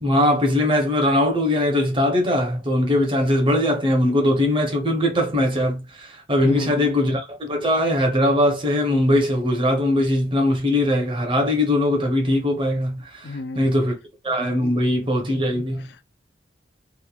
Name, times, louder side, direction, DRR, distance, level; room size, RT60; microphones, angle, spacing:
voice 1, 0.0-14.0 14.2-15.9, left 1 dB, 25° right, 0.7 m, -21 dB
voice 2, 6.4-7.0 13.2-13.7 14.6-14.8 15.8-16.0, left 2 dB, 60° left, 0.4 m, -33 dB
3.0 x 2.2 x 2.3 m
head